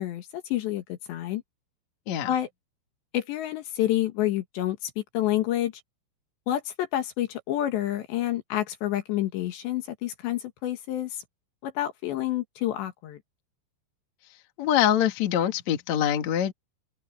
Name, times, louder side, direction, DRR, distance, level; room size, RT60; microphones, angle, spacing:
voice 1, 0.0-1.4 2.3-2.5 3.1-5.7 6.5-11.2 11.6-13.2, left 13 dB, 70° left, 3.5 m, -28 dB
voice 2, 14.6-16.5, left 10 dB, 50° left, 2.4 m, -24 dB
omnidirectional pair, 5.7 m